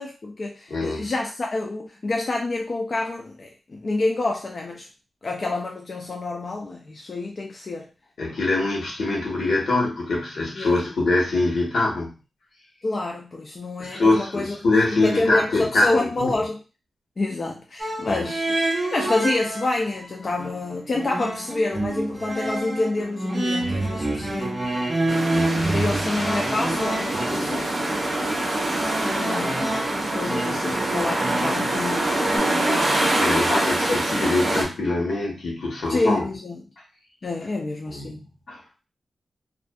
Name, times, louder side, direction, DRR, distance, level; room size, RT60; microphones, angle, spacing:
voice 1, 0.0-4.9 5.2-7.9 10.6-10.8 12.8-14.6 14.9-16.6 17.2-18.6 18.9-24.6 25.7-28.1 29.0-32.8 33.8-34.7 35.9-36.6 37.2-38.2, left 2 dB, 40° left, 0 dB, 0.3 m, -28 dB
voice 2, 0.7-1.1 8.2-12.1 13.8-16.3 18.0-18.2 25.3-25.7 33.2-36.2 37.9-38.6, left 2 dB, 75° left, -2 dB, 1.0 m, -24 dB
sound 1, 17.8-20.1 20.4-32.4, right 2 dB, 15° right, 0.7 m, -28 dB
sound 2, 25.1-34.6, right 1 dB, 40° right, 0.9 m, -25 dB
2.5 x 2.4 x 2.3 m, 0.32 s
wide cardioid pair, 155°, 0 cm